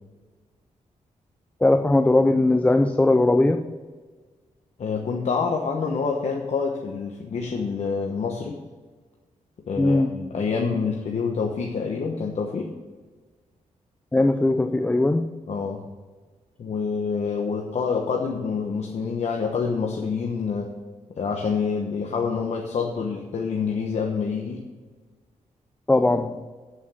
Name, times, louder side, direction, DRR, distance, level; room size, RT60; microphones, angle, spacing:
voice 1, 1.6-3.7 9.8-10.3 14.1-15.3 25.9-26.4, left 2 dB, 10° left, 7 dB, 0.4 m, -19 dB
voice 2, 4.8-8.6 9.7-12.7 15.5-15.8 16.6-20.8 21.2-24.6, left 5 dB, 55° left, 0 dB, 1.1 m, -27 dB
8.4 x 7.3 x 6.4 m, 1.4 s
wide cardioid pair, 155°, 13 cm